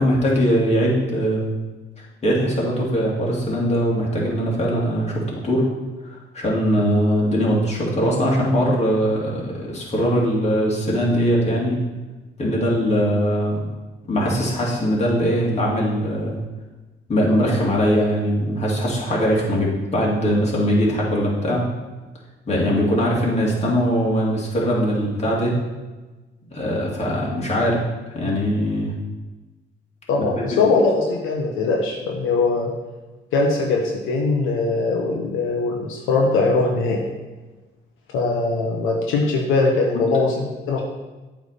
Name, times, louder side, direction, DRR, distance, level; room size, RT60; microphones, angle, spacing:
voice 1, 0.0-1.5 2.0-5.7 6.0-11.8 12.4-13.6 14.0-16.4 17.1-21.6 22.5-25.5 26.5-27.8 28.1-28.9 30.4-30.5 39.9-40.0, equal, 35° left, -4 dB, 2.4 m, -21 dB
voice 2, 30.1-32.7 33.3-37.0 38.1-40.8, left 3 dB, 85° left, -1 dB, 1.0 m, -21 dB
8.2 x 3.6 x 5.1 m, 1.2 s
cardioid pair, 90°, 20 cm